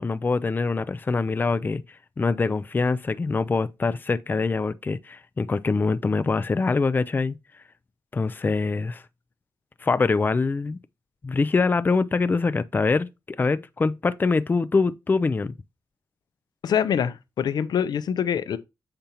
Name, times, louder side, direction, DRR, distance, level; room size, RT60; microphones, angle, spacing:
voice 1, 0.0-1.8 2.2-7.4 8.1-9.0 9.8-10.8 11.2-15.5, left 4 dB, 30° left, 0.4 m, -24 dB
voice 2, 16.6-18.6, left 8 dB, 85° left, 0.5 m, -25 dB
6.8 x 5.1 x 2.9 m
wide cardioid pair, 100°, 7 cm